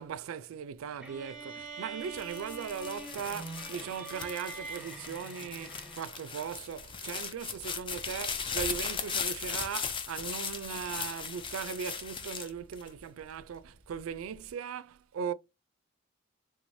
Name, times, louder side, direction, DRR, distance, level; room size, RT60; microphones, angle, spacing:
voice 1, 0.0-15.3, right 7 dB, 85° right, 0.3 m, -39 dB
sound 1, 1.0-6.3, right 3 dB, 5° right, 0.7 m, -44 dB
sound 2, 2.0-13.4 13.9-14.5, left 6 dB, 25° left, 0.5 m, -38 dB
3.7 x 3.1 x 2.6 m
head